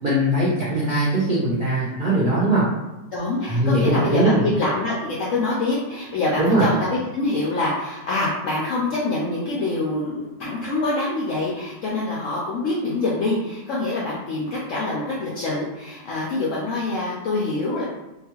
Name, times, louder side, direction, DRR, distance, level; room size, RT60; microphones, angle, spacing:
voice 1, 0.0-2.7 3.4-4.4 6.4-6.7, right 1 dB, 75° right, -8 dB, 0.4 m, -20 dB
voice 2, 3.1-17.8, left 2 dB, 75° left, -5 dB, 0.7 m, -25 dB
2.9 x 2.3 x 2.8 m, 0.99 s
omnidirectional pair, 1.9 m